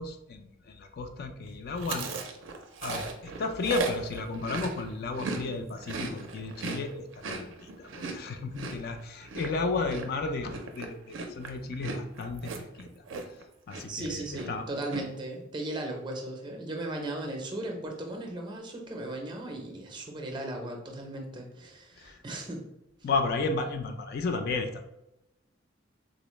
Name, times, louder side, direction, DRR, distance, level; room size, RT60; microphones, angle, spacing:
voice 1, 0.0-2.1 2.8-12.5 12.8-12.9 13.7-14.6 22.0-22.2 23.0-24.7, left 3 dB, 50° left, 6 dB, 0.3 m, -33 dB
Chewing mastication, 1.8-5.4 5.7-13.4 13.7-14.1 14.3-15.0, right 3 dB, 70° right, 0.4 m, -37 dB
voice 2, 13.9-22.6, right 1 dB, 25° right, 2 dB, 0.6 m, -37 dB
3.7 x 2.0 x 3.0 m, 0.88 s
head